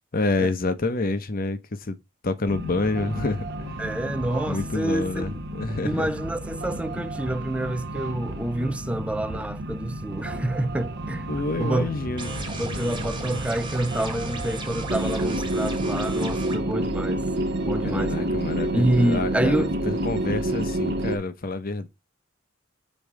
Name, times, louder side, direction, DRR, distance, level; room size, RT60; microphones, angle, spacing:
voice 1, 0.1-2.0 2.2-3.8 4.5-6.1 11.3-12.4 17.8-21.9, left 2 dB, 45° left, 0.8 m, -28 dB
sound 1, 2.5-21.2, right 1 dB, 60° right, 0.8 m, -30 dB
voice 2, 3.8-5.3 5.8-11.3 11.6-11.9 12.6-17.2 17.6-18.3 18.7-19.7, right 1 dB, 5° right, 0.4 m, -27 dB
sound 2, 11.4-19.3, left 1 dB, 80° left, 1.1 m, -42 dB
sound 3, 12.2-16.6, right 3 dB, 25° right, 1.2 m, -36 dB
5.4 x 3.8 x 4.7 m
head